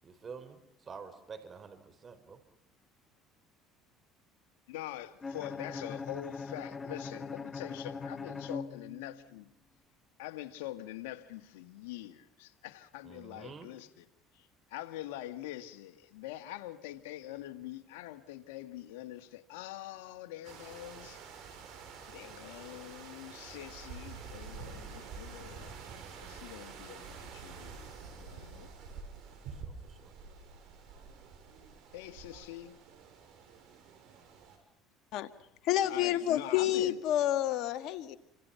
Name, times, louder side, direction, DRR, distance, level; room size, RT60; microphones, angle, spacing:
voice 1, 0.0-2.4 13.0-13.7 29.4-30.1, right 5 dB, 35° right, 4.6 m, -49 dB
voice 2, 4.7-9.5 10.2-14.1 14.3-21.2 22.1-25.8 26.2-28.7 31.9-32.7 35.9-37.0, left 14 dB, 90° left, 1.8 m, -44 dB
Bowed string instrument, 5.2-9.3, left 4 dB, 25° left, 1.2 m, -41 dB
sound 1, 20.4-34.6, right 5 dB, 65° right, 6.9 m, -48 dB
voice 3, 35.6-38.2, left 12 dB, 65° left, 2.1 m, -29 dB
30.0 x 25.5 x 5.8 m
supercardioid pair, 95°, 0 cm